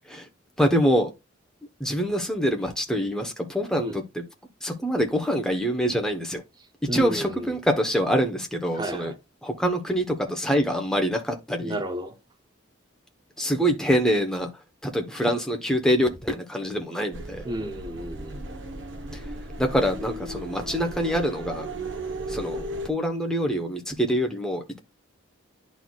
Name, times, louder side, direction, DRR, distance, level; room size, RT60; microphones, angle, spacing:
voice 1, 0.6-1.1 1.8-4.2 4.6-6.4 6.9-9.1 9.4-11.8 13.4-14.5 14.8-17.4 19.6-21.6 22.3-24.8, equal, 5° left, 1.0 m, -25 dB
voice 2, 6.9-7.5 8.7-9.2 11.6-12.2 17.4-18.4, right 1 dB, 20° right, 0.7 m, -32 dB
sound 1, 17.1-22.9, right 1 dB, 65° right, 1.0 m, -36 dB
11.0 x 4.2 x 2.3 m
head